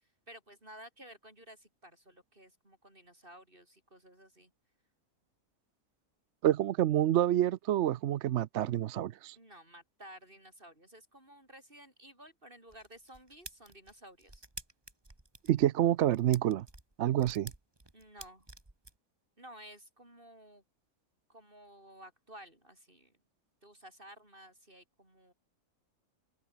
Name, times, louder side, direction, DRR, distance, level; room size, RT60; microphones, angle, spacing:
voice 1, 0.3-4.5 9.3-14.4 17.9-18.5 19.4-20.6 21.3-23.1 23.6-25.3, right 1 dB, 35° right, 7.4 m, -54 dB
voice 2, 6.4-9.4 15.5-16.7 17.0-17.5, right 12 dB, 65° right, 0.8 m, -28 dB
sound 1, 12.7-18.9, right 2 dB, 15° right, 2.0 m, -50 dB
open air
omnidirectional pair, 1.6 m